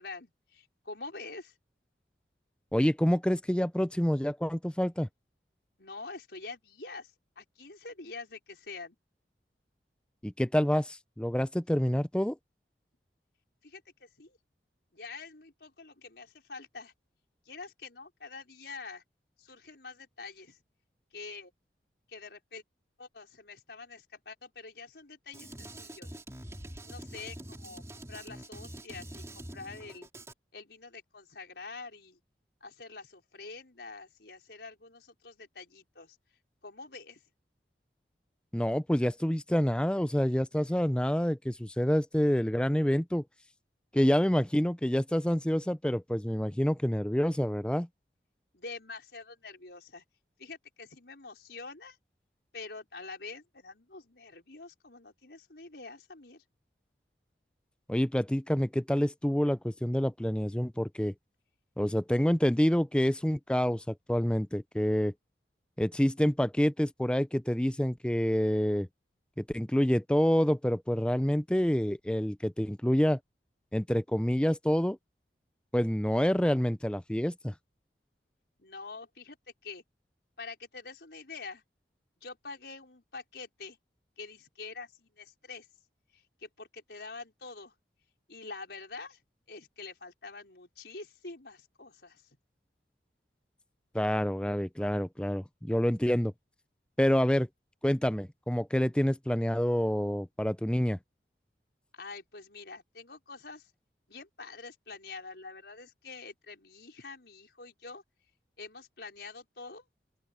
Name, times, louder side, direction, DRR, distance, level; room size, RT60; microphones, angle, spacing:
voice 1, 0.0-1.5 5.8-9.0 13.6-14.4 14.9-16.9 17.4-19.0 19.4-20.6 21.1-21.5 22.1-22.6 23.0-26.1 26.9-30.1 30.5-32.2 32.6-36.2 36.6-37.2 48.5-50.0 50.4-52.0 52.5-56.4 78.6-79.4 79.6-79.8 80.4-81.6 82.2-83.8 84.2-85.7 86.1-87.7 88.3-89.2 89.5-92.2 101.9-103.7 104.1-108.0 108.6-109.8, left 4 dB, 75° left, 4.8 m, -46 dB
voice 2, 2.7-5.1 10.2-12.4 38.5-43.2 43.9-47.9 57.9-61.1 61.8-65.1 65.8-68.9 69.4-73.2 73.7-75.0 75.7-77.5 93.9-96.3 97.0-97.5 97.8-101.0, equal, 5° left, 0.5 m, -27 dB
Drum kit, 25.3-30.3, right 1 dB, 15° right, 3.6 m, -45 dB
open air
head